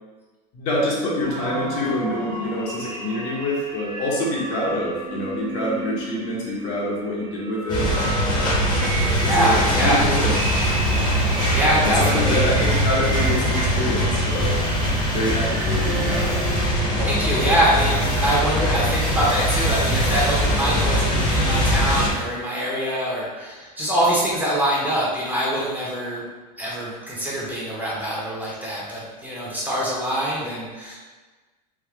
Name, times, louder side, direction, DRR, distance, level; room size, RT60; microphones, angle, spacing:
voice 1, 0.5-7.9 9.4-10.4 11.7-14.6 15.1-16.5, left 1 dB, 55° left, -4 dB, 1.1 m, -26 dB
sound 1, 1.2-16.3, right 2 dB, 65° right, 0.9 m, -33 dB
sound 2, 7.7-22.1, equal, 20° left, 0.9 m, -22 dB
voice 2, 9.2-10.0 11.5-12.4 17.0-26.2 26.6-31.0, right 1 dB, 10° right, -6 dB, 0.8 m, -24 dB
Acoustic guitar, 15.8-19.3, equal, 85° left, 0.6 m, -36 dB
3.6 x 2.1 x 3.4 m, 1.3 s
supercardioid pair, 125°, 21 cm